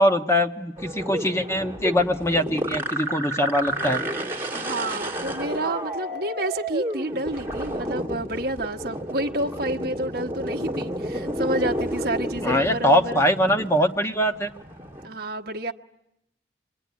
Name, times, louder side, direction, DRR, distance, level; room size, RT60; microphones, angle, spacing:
voice 1, 0.0-4.0 12.4-14.5, equal, 15° left, 5 dB, 1.3 m, -22 dB
sound 1, 0.8-15.1, equal, 15° right, 2.1 m, -31 dB
voice 2, 4.5-13.2 15.0-15.7, right 1 dB, 60° right, 1 dB, 1.3 m, -29 dB
27.0 x 22.5 x 9.6 m, 0.82 s
head